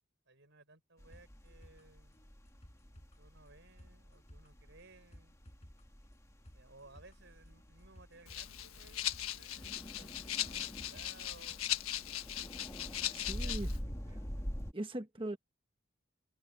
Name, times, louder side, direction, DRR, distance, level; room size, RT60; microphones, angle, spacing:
voice 1, 0.3-2.2 3.2-5.4 6.5-11.7 12.1-12.3 12.8-14.5, right 3 dB, 55° right, 6.0 m, -60 dB
sound 1, 1.0-14.7, equal, 15° left, 1.9 m, -46 dB
sound 2, 1.1-11.2 11.5-11.6, equal, 30° left, 5.6 m, -60 dB
Rattle (instrument), 8.3-13.8, left 12 dB, 80° left, 1.3 m, -39 dB
voice 2, 12.9-13.7 14.1-14.2 14.7-15.4, right 1 dB, 25° right, 1.3 m, -41 dB
head